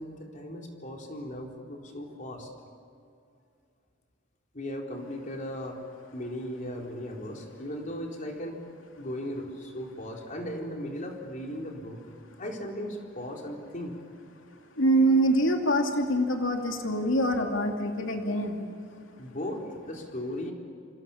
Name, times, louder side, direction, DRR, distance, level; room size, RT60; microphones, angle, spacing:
voice 1, 0.0-2.5 4.5-5.8 6.1-8.6 9.0-12.0 12.4-14.0 19.2-20.5, equal, 45° left, 1 dB, 4.1 m, -37 dB
voice 2, 14.8-18.6, right 1 dB, 85° left, 3 dB, 2.7 m, -25 dB
28.0 x 26.0 x 7.3 m, 2.4 s
head